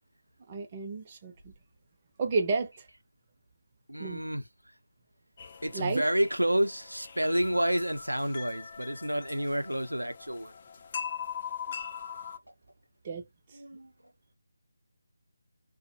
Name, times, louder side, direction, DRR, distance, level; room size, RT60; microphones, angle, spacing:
voice 1, 0.5-1.5 2.2-2.9 4.0-4.2 5.7-6.0 13.0-13.2, right 4 dB, 25° right, 0.6 m, -31 dB
voice 2, 3.9-4.4 5.6-10.5 13.5-13.9, right 1 dB, 85° right, 0.6 m, -29 dB
sound 1, 5.4-12.4, left 7 dB, 35° left, 0.4 m, -41 dB
3.7 x 2.1 x 2.7 m
figure-of-eight pair, 155°, 0 cm